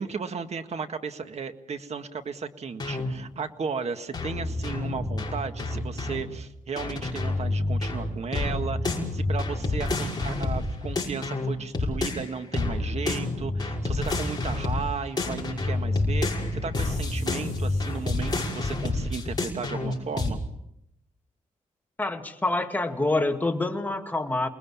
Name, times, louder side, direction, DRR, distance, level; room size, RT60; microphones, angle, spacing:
voice 1, 0.0-20.4, right 5 dB, 55° right, 8 dB, 1.8 m, -35 dB
sound 1, 2.8-3.1 4.1-6.2 6.8-12.3 12.5-14.9 15.2-20.3, left 2 dB, 30° left, 5.6 m, -28 dB
voice 2, 22.0-24.5, left 2 dB, 10° left, 4 dB, 2.3 m, -26 dB
29.0 x 20.5 x 7.2 m, 0.80 s
cardioid pair, 105°, 14 cm